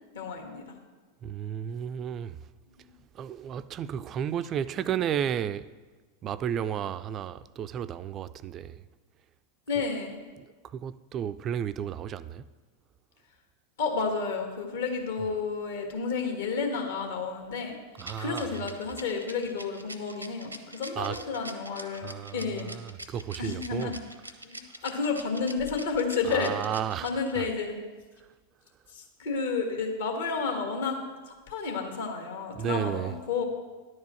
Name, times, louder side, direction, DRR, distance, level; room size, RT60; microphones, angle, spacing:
voice 1, 0.1-0.7 9.7-10.2 13.8-17.8 18.2-22.7 23.4-24.0 24.4-26.6 27.0-27.8 28.9-31.0 31.2-33.4, left 5 dB, 60° left, 1.5 m, -31 dB
voice 2, 1.2-2.4 3.1-5.7 6.2-8.8 10.4-12.4 18.0-18.7 21.0-21.2 22.0-23.9 26.3-27.5 32.5-33.1, right 9 dB, 30° right, 0.3 m, -33 dB
Rattle, 18.0-27.5, right 1 dB, 85° right, 0.7 m, -43 dB
10.5 x 4.7 x 7.6 m
figure-of-eight pair, 90°, 0 cm